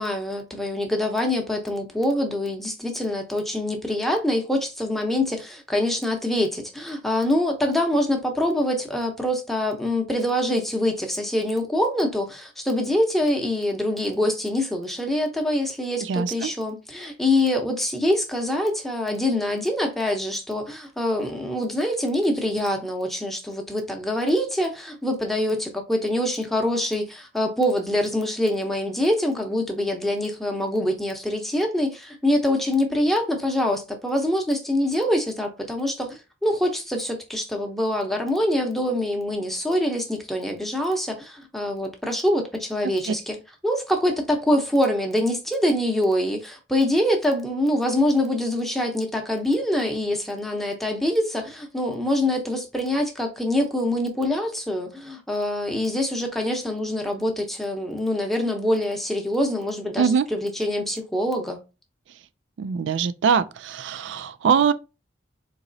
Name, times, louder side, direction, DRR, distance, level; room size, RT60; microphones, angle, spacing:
voice 1, 0.0-43.4 43.6-61.6, left 1 dB, ahead, 0.7 m, -25 dB
voice 2, 16.1-16.5 60.0-60.3 62.6-64.7, right 6 dB, 70° right, 0.3 m, -22 dB
4.0 x 2.9 x 2.6 m
head